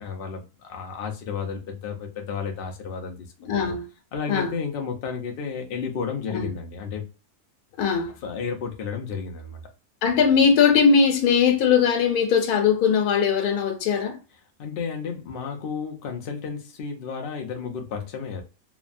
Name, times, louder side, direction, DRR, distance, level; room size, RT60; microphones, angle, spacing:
voice 1, 0.0-3.6 4.1-7.0 8.2-9.6 14.6-18.4, left 6 dB, 65° left, 0.6 m, -32 dB
voice 2, 3.5-3.9 4.3-4.5 6.3-6.5 7.8-8.1 10.0-14.1, left 6 dB, 90° left, 1.2 m, -20 dB
3.0 x 2.1 x 2.5 m
omnidirectional pair, 1.6 m